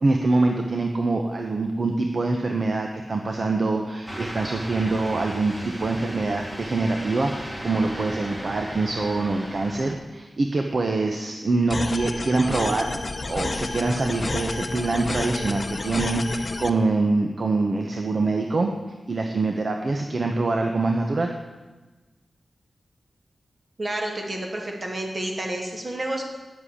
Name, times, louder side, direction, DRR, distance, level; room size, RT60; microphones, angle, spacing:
voice 1, 0.0-13.0 13.3-18.7 19.1-21.3, right 3 dB, 55° right, 3 dB, 1.0 m, -24 dB
sound 1, 4.1-9.9, equal, 20° right, 1.9 m, -36 dB
sound 2, 11.7-16.7, left 2 dB, 40° left, 0.8 m, -30 dB
voice 2, 23.8-26.2, right 1 dB, 40° right, 0 dB, 2.5 m, -30 dB
9.6 x 7.6 x 8.5 m, 1.2 s
wide cardioid pair, 100°, 0 cm